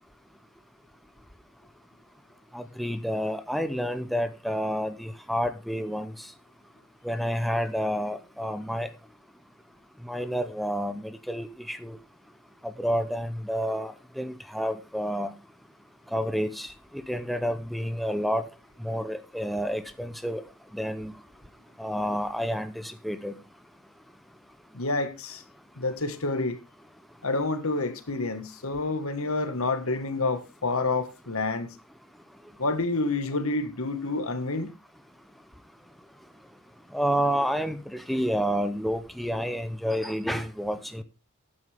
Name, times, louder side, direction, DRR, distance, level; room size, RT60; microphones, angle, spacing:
voice 1, 2.5-6.3 7.0-8.9 10.0-12.0 12.6-15.3 16.1-18.5 18.8-20.4 20.7-21.1 21.8-23.4 36.9-41.0, equal, ahead, 0.7 m, -29 dB
voice 2, 24.7-25.4 25.8-26.6 27.2-31.7 32.6-34.7, left 3 dB, 70° left, 1.7 m, -28 dB
12.5 x 9.7 x 3.5 m
head